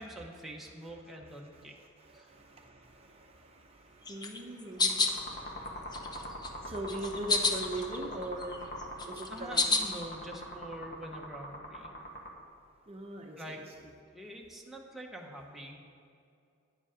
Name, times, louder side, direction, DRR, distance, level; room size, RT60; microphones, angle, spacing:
voice 1, 0.0-1.7 2.1-2.3 9.3-11.9 13.4-13.6 14.1-15.8, right 1 dB, ahead, -1 dB, 0.9 m, -45 dB
voice 2, 1.1-9.8 12.9-13.6, right 1 dB, 30° right, 1 dB, 0.8 m, -42 dB
sound 1, 4.1-5.2 5.7-6.5 6.9-8.0 8.3-10.0, left 3 dB, 20° left, 0.6 m, -29 dB
sound 2, 4.8-12.3, left 1 dB, 50° left, 1.7 m, -42 dB
9.9 x 8.1 x 5.0 m, 2.4 s
head